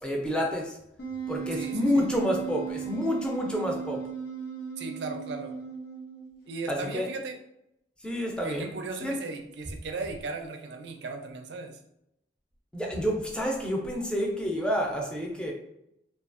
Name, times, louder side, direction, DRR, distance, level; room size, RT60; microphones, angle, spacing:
voice 1, 0.0-0.8 1.3-4.0 6.7-7.1 8.0-8.7 9.0-9.2 12.7-15.5, equal, 5° left, -1 dB, 0.4 m, -29 dB
Wind instrument woodwind instrument, 1.0-6.4, right 7 dB, 60° left, 0.5 m, -36 dB
voice 2, 1.5-2.1 4.8-5.6 6.5-7.4 8.4-11.8, right 3 dB, 70° right, 4 dB, 0.4 m, -37 dB
2.7 x 2.3 x 2.4 m, 0.81 s
head